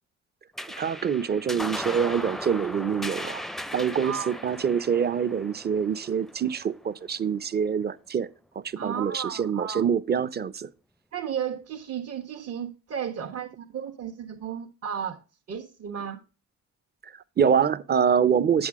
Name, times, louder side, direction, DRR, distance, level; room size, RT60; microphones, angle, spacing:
sound 1, 0.6-7.3, left 1 dB, ahead, 0.5 m, -37 dB
voice 1, 0.8-3.4 3.7-8.3 8.6-10.7 17.0-18.7, right 7 dB, 35° right, 0.7 m, -25 dB
voice 2, 4.0-4.3 8.7-9.9 11.1-15.2 15.5-16.2, right 8 dB, 55° right, 1.5 m, -34 dB
8.2 x 7.9 x 3.6 m
cardioid pair, 90°, 30 cm